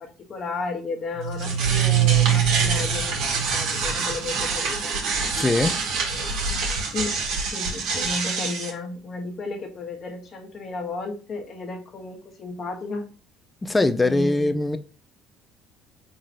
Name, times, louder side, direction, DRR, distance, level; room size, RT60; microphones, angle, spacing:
voice 1, 0.0-4.9 6.9-13.0 14.0-14.6, left 3 dB, 45° left, 1.4 m, -33 dB
sound 1, 1.2-8.7, right 6 dB, 80° right, 1.7 m, -24 dB
voice 2, 5.4-5.7 13.6-14.8, left 2 dB, 15° left, 0.5 m, -21 dB
4.9 x 3.8 x 2.8 m
cardioid pair, 115°, 0 cm